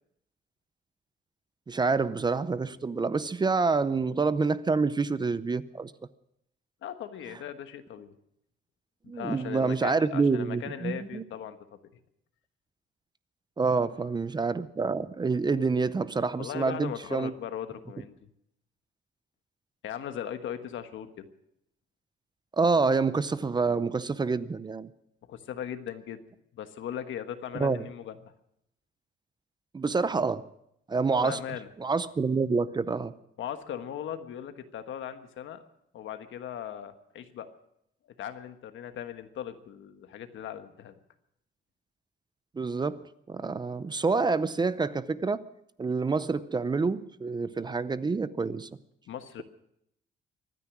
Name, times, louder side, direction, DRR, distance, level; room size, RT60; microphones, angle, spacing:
voice 1, 1.7-5.9 9.1-11.2 13.6-17.3 22.6-24.9 27.6-27.8 29.7-30.5 30.9-31.4 31.8-33.1 42.6-43.0 43.3-45.4 45.8-48.7, right 4 dB, 20° right, 15 dB, 0.6 m, -27 dB
voice 2, 6.8-8.1 9.0-11.6 16.4-18.3 19.8-21.3 25.3-26.2 26.5-28.3 31.2-31.7 33.4-35.6 35.9-37.5 38.2-40.9 49.1-49.4, left 9 dB, 85° left, 8 dB, 1.4 m, -38 dB
24.0 x 9.7 x 6.1 m, 0.77 s
cardioid pair, 140°, 19 cm